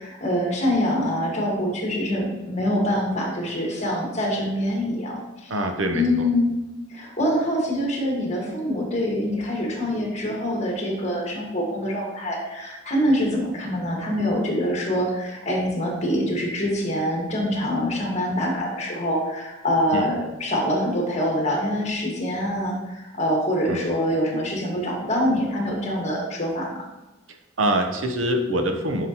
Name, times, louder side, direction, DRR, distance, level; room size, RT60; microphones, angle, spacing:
voice 1, 0.0-5.5 5.9-6.5 6.9-26.8, equal, 35° left, -1 dB, 1.6 m, -25 dB
voice 2, 5.5-6.3 19.9-20.1 23.7-23.8 27.6-29.1, right 1 dB, 80° right, 5 dB, 0.8 m, -24 dB
7.7 x 5.9 x 2.9 m, 1.0 s
head